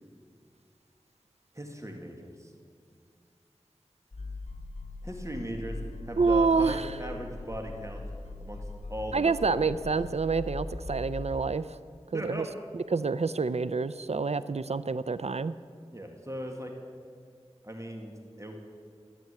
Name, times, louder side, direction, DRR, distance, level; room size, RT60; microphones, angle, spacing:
voice 1, 1.5-2.5 5.0-5.8 6.1-8.0 8.4-9.8 12.1-12.5 15.9-16.7 17.6-18.7, equal, 25° right, 2 dB, 2.0 m, -38 dB
sound 1, 4.1-11.4, left 2 dB, 80° left, 1.0 m, -40 dB
voice 2, 6.2-6.9 9.1-11.8 12.1-12.4 12.9-15.5, right 4 dB, 70° right, 15 dB, 0.5 m, -27 dB
14.5 x 9.1 x 9.6 m, 2.1 s
wide cardioid pair, 40°, 11 cm